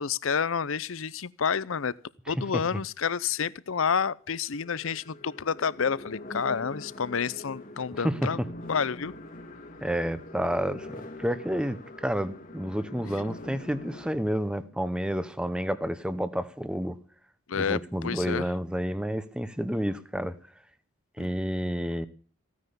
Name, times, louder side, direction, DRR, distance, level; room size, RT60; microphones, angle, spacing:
voice 1, 0.0-1.9 2.3-9.1 17.5-18.5 21.2-21.3, left 6 dB, 70° left, 0.6 m, -29 dB
sound 1, 3.3-3.4 4.5-14.1, left 1 dB, 40° left, 1.7 m, -43 dB
voice 2, 9.8-10.9 11.2-17.0 17.5-20.3 21.2-22.1, equal, 5° right, 0.9 m, -30 dB
16.0 x 9.7 x 6.8 m
head